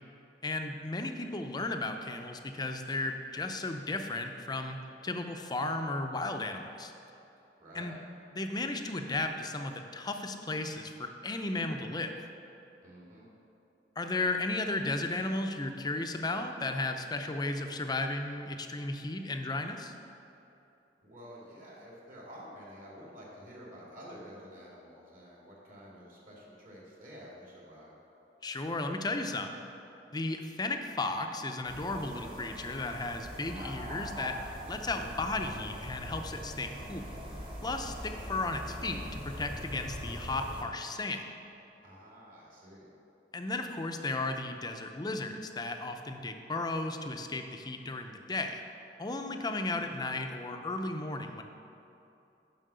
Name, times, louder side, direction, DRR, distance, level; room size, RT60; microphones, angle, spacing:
voice 1, 0.4-6.9 7.7-7.9 8.4-12.1 14.0-19.9 28.4-29.6 30.1-37.1 37.6-41.2 43.3-48.6 49.0-51.4, left 2 dB, 25° left, 5 dB, 0.5 m, -34 dB
voice 2, 7.6-8.0 12.8-13.3 21.0-27.9 41.8-42.9, equal, 50° right, -4 dB, 2.2 m, -50 dB
sound 1, 31.7-40.6, equal, 30° right, 1.3 m, -42 dB
7.4 x 5.6 x 6.8 m, 2.9 s
head